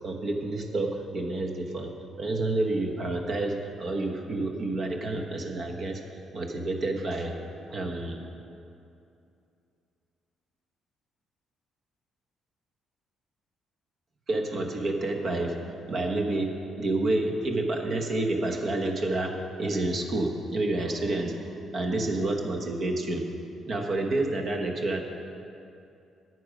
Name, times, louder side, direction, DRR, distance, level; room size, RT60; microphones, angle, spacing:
voice 1, 0.0-6.0 6.3-7.4 7.7-8.2 14.3-21.4 21.7-23.2 23.7-25.0, right 2 dB, 55° right, 2 dB, 1.2 m, -29 dB
10.5 x 7.9 x 5.2 m, 2.7 s
supercardioid pair, 55°, 0 cm